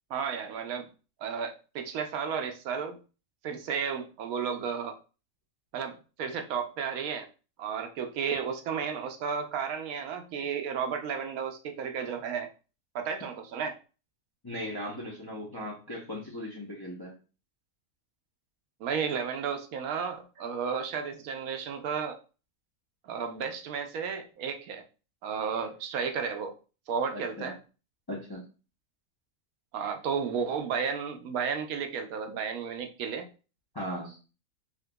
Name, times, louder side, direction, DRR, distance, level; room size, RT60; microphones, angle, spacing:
voice 1, 0.1-0.9 1.2-3.0 3.4-5.0 5.7-7.3 7.6-12.5 12.9-13.8 18.8-22.2 23.0-24.8 25.2-26.5 26.9-27.6 29.7-33.3, right 6 dB, 80° right, 6 dB, 1.0 m, -33 dB
voice 2, 14.4-17.1 27.1-27.5 28.1-28.4 33.7-34.2, equal, 35° left, -3 dB, 0.4 m, -38 dB
3.7 x 2.8 x 2.2 m, 0.34 s
omnidirectional pair, 1.5 m